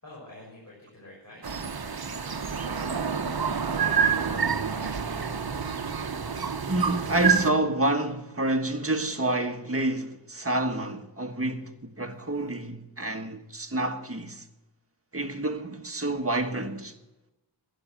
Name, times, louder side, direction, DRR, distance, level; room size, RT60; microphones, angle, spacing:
voice 1, 0.0-5.5, left 1 dB, 40° left, 6.1 m, -49 dB
sound 1, 1.4-7.5, right 6 dB, 60° right, 1.0 m, -28 dB
voice 2, 6.7-14.4 15.1-16.9, right 2 dB, 35° right, 1.6 m, -28 dB
11.5 x 11.5 x 7.6 m
wide cardioid pair, 50°, 42 cm